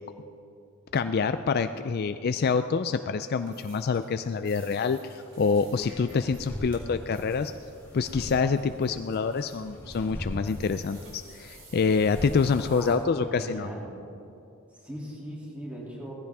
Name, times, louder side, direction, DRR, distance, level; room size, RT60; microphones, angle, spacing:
voice 1, 0.9-7.5 7.9-13.7, left 5 dB, 50° left, 10 dB, 0.4 m, -26 dB
sound 1, 3.4-12.9, right 3 dB, 65° right, 4.4 m, -55 dB
sound 2, 5.5-12.9, equal, 10° left, 4.0 m, -41 dB
voice 2, 12.7-14.0 14.8-16.1, equal, 5° right, -4 dB, 2.6 m, -39 dB
19.0 x 15.5 x 3.5 m, 2.7 s
head